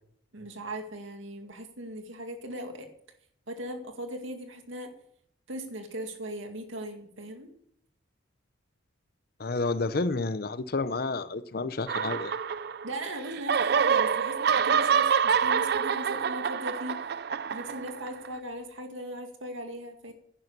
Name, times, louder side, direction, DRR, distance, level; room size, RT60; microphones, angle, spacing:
voice 1, 0.3-2.9 3.5-4.9 5.5-7.5 12.8-17.1 17.5-20.1, right 1 dB, 75° right, 2.2 m, -38 dB
voice 2, 9.4-12.3, left 3 dB, 50° left, 0.6 m, -30 dB
sound 1, 11.9-13.0 13.3-18.3, right 7 dB, 50° right, 0.4 m, -26 dB
11.0 x 10.5 x 6.8 m
head